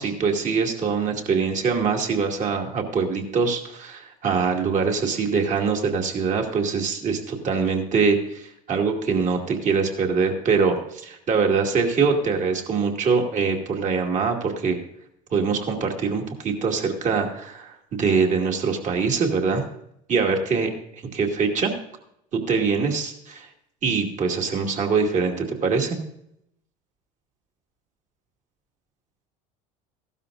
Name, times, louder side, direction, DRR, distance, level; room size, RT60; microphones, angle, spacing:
voice 1, 0.0-14.8 15.3-19.6 20.1-20.7 21.1-21.7 22.3-23.5 23.8-26.0, right 5 dB, 40° right, 3 dB, 2.4 m, -23 dB
15.0 x 12.5 x 2.6 m, 0.75 s
hypercardioid pair, 85°, 19 cm